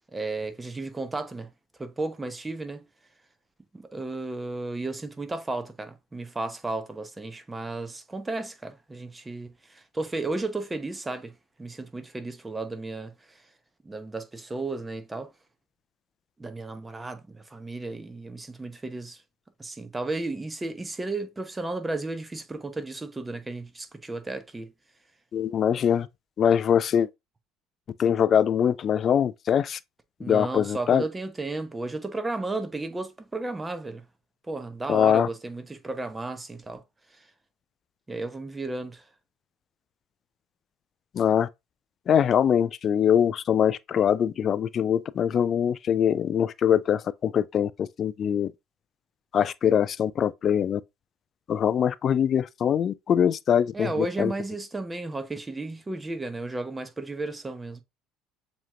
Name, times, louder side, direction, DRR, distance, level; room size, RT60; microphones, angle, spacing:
voice 1, 0.1-1.5 1.8-2.9 3.7-13.4 13.8-15.3 16.4-19.2 19.6-24.7 30.2-34.1 34.5-36.8 37.1-37.3 38.1-39.0 53.7-57.8, right 2 dB, 15° right, 0.8 m, -34 dB
voice 2, 25.3-26.1 26.4-27.1 28.0-29.8 30.2-31.0 34.9-35.3 41.1-41.5 42.1-48.5 49.3-50.8 51.5-54.3, left 8 dB, 45° left, 0.3 m, -23 dB
7.1 x 2.9 x 2.4 m
hypercardioid pair, 65°, 0 cm